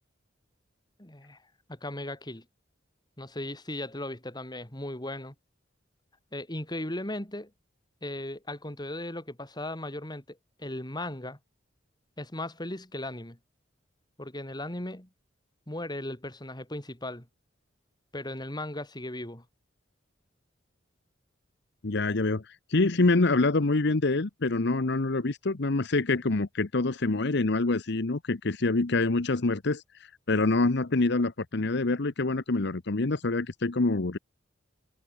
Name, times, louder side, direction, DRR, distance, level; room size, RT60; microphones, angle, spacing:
voice 1, 1.0-1.4 1.7-2.4 3.2-5.3 6.3-7.5 8.0-11.4 12.2-13.4 14.2-15.1 15.7-17.3 18.1-19.4, left 1 dB, 20° left, 3.7 m, -37 dB
voice 2, 21.8-34.2, left 3 dB, 60° left, 1.0 m, -26 dB
head